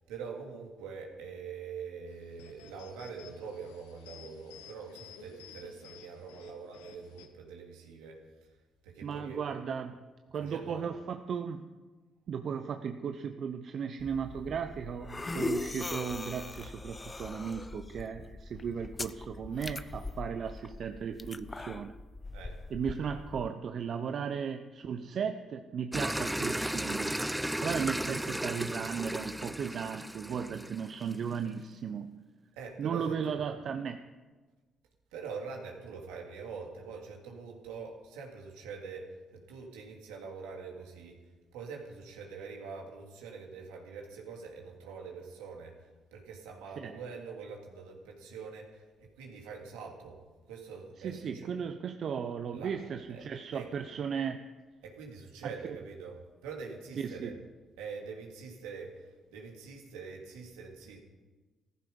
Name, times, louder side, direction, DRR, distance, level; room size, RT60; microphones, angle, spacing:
voice 1, 0.1-8.5 8.8-9.4 10.4-10.9 22.3-22.6 32.6-33.4 35.1-41.2 41.5-50.2 50.5-51.5 52.5-52.8 53.1-53.9 54.8-57.3 57.8-61.0, right 5 dB, 80° right, 0 dB, 2.7 m, -44 dB
sound 1, 2.1-7.3, left 8 dB, 85° left, 1.1 m, -53 dB
voice 2, 9.0-10.0 10.3-11.7 12.3-22.0 22.7-27.2 27.6-32.1 32.8-34.0 46.8-46.9 51.0-54.4 55.4-55.5 57.0-57.3, right 7 dB, 60° right, 7 dB, 0.8 m, -36 dB
sound 2, 14.0-23.5, left 3 dB, 25° left, 0.7 m, -41 dB
sound 3, 25.9-31.3, right 1 dB, 5° right, 0.5 m, -35 dB
15.5 x 14.0 x 5.5 m, 1.3 s
hypercardioid pair, 50°, 0 cm